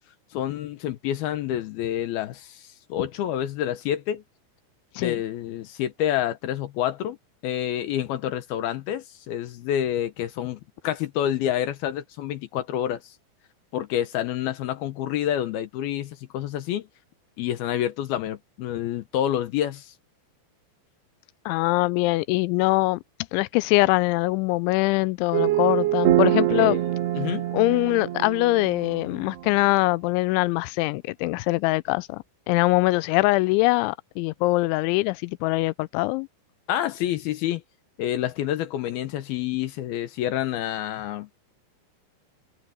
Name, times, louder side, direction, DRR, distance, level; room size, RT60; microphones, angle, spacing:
voice 1, 0.3-4.2 5.0-7.2 7.4-13.2 13.7-16.9 17.4-19.9 26.5-26.9 27.2-27.5 36.7-37.6 38.0-41.4, left 11 dB, 70° left, 2.5 m, -28 dB
voice 2, 21.5-23.0 23.3-26.8 27.5-36.3, left 22 dB, 90° left, 3.0 m, -23 dB
sound 1, 25.3-29.8, right 14 dB, 70° right, 3.3 m, -25 dB
omnidirectional pair, 5.3 m